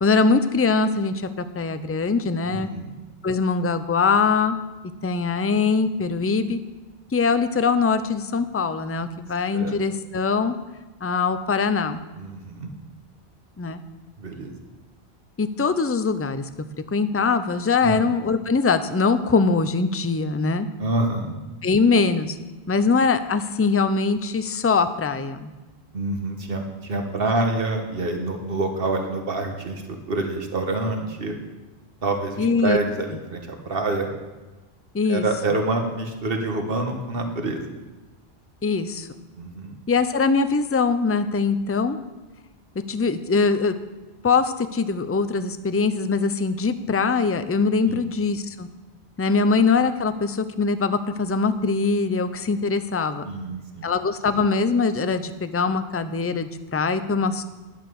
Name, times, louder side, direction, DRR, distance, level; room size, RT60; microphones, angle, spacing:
voice 1, 0.0-2.7 3.2-4.6 5.0-6.6 7.1-10.5 11.0-12.0 13.6-13.8 15.4-16.5 16.9-20.7 21.6-22.4 22.7-25.5 32.4-32.8 34.9-35.2 38.6-39.1 39.9-42.0 42.9-43.7 44.2-48.7 49.2-53.3 53.8-57.4, left 4 dB, 20° left, 11 dB, 0.4 m, -22 dB
voice 2, 2.4-2.9 9.5-9.7 12.2-12.7 14.2-14.5 17.8-18.0 20.8-21.3 25.9-31.4 32.0-34.1 35.0-37.6 39.4-39.7 47.9-48.1 53.2-53.9, right 2 dB, 60° right, 4 dB, 1.7 m, -27 dB
11.0 x 7.5 x 7.0 m, 1.2 s
omnidirectional pair, 1.1 m